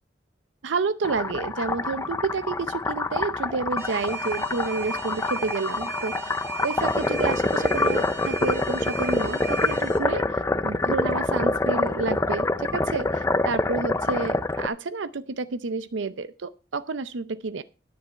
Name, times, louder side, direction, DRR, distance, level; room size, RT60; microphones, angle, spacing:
voice 1, 0.6-6.3 6.6-17.6, right 4 dB, 90° right, 13 dB, 0.6 m, -30 dB
sound 1, 1.0-14.7, left 2 dB, 15° left, 0.5 m, -26 dB
Alarm, 3.8-10.0, right 3 dB, 15° right, 1.5 m, -37 dB
10.5 x 10.0 x 4.4 m, 0.34 s
head